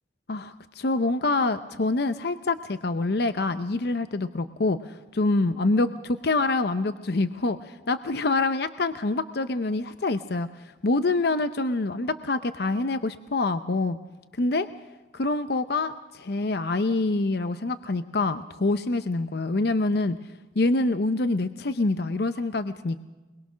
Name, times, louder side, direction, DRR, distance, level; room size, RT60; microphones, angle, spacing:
voice 1, 0.3-10.5 10.8-14.0 14.3-14.7 15.1-20.2 20.6-23.0, left 2 dB, 65° left, 11 dB, 0.7 m, -26 dB
23.5 x 22.0 x 6.2 m, 1.2 s
head